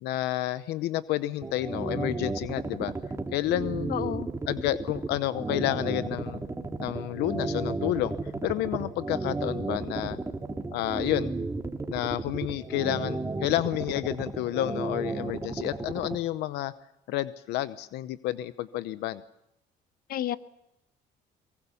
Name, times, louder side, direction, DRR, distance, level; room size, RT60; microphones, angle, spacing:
voice 1, 0.0-2.9 3.3-4.0 4.5-6.4 6.8-8.1 8.4-10.2 10.7-11.3 11.9-16.7 17.1-19.2, left 15 dB, 85° left, 14 dB, 0.8 m, -30 dB
sound 1, 1.4-16.2, right 3 dB, 15° right, 2.2 m, -33 dB
voice 2, 3.9-4.3 20.1-20.4, left 11 dB, 60° left, 13 dB, 1.1 m, -30 dB
23.5 x 22.5 x 7.2 m, 0.82 s
cardioid pair, 110°, 17 cm